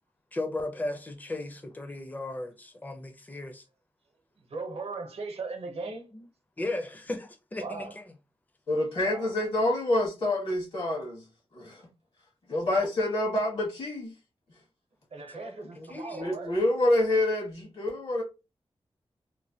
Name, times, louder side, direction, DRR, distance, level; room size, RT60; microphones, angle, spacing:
voice 1, 0.3-3.7 6.1-6.3 6.6-8.1 15.3-16.3, left 2 dB, 15° left, 0.5 m, -36 dB
voice 2, 4.5-6.0 7.6-7.9 9.0-9.3 15.1-16.5, right 3 dB, 80° right, 0.8 m, -38 dB
voice 3, 8.7-11.2 11.5-11.8 12.5-14.1 15.7-18.2, left 1 dB, 65° left, 1.4 m, -27 dB
3.1 x 2.2 x 2.7 m
wide cardioid pair, 120°, 10 cm